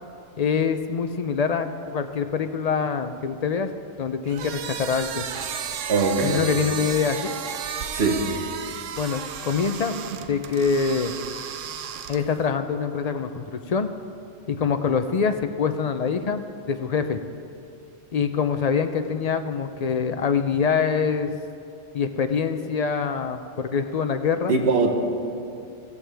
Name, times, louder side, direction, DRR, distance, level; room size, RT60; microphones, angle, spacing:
voice 1, 0.4-3.7 4.0-5.3 6.2-7.3 9.0-9.9 10.3-11.2 12.1-13.9 14.5-17.2 18.1-21.4 21.9-24.5, left 6 dB, 50° left, 8 dB, 0.5 m, -25 dB
sound 1, 4.3-12.5, right 8 dB, 90° right, 1.0 m, -33 dB
voice 2, 5.9-6.6 7.9-8.2 24.5-24.9, right 4 dB, 60° right, 3 dB, 1.4 m, -21 dB
15.0 x 14.5 x 3.4 m, 2.6 s
omnidirectional pair, 1.2 m